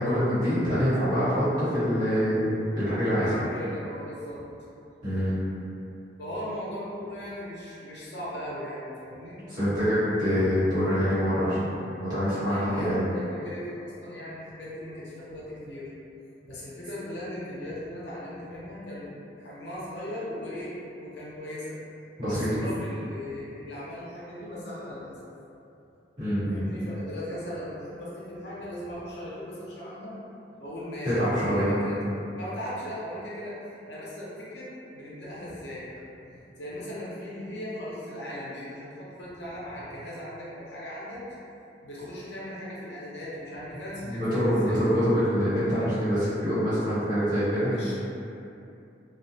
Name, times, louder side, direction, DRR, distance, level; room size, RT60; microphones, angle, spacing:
voice 1, 0.0-3.3 5.0-5.4 9.5-11.6 12.0-13.0 22.2-22.5 26.2-26.6 31.0-31.9 44.0-47.7, equal, 45° right, -15 dB, 1.3 m, -25 dB
voice 2, 3.2-4.4 6.2-9.4 12.5-15.9 16.4-21.8 22.3-25.2 26.5-30.2 30.6-33.6 33.9-35.9 36.2-41.2 41.8-44.8 47.7-48.0, left 1 dB, 70° left, -8 dB, 0.7 m, -38 dB
2.4 x 2.1 x 2.6 m, 2.7 s
head